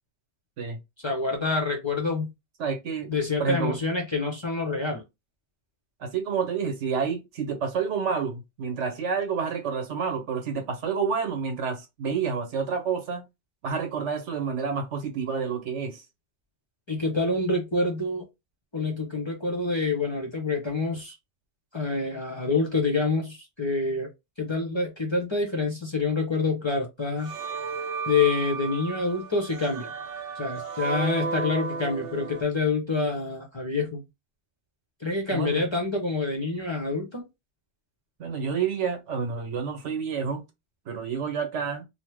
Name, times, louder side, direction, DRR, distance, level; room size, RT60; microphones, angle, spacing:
voice 1, 1.0-2.3 3.1-5.0 16.9-18.3 18.7-21.1 21.7-24.1 24.4-27.3 28.0-29.9 30.4-34.0 35.0-37.3, left 3 dB, 30° left, 0.7 m, -27 dB
voice 2, 2.6-3.1 3.4-3.8 6.0-13.2 13.6-16.0 35.3-35.6 38.2-40.4 40.9-41.8, right 6 dB, 80° right, 1.1 m, -29 dB
sound 1, 27.2-32.4, right 5 dB, 60° right, 0.7 m, -33 dB
2.9 x 2.1 x 3.3 m
omnidirectional pair, 1.2 m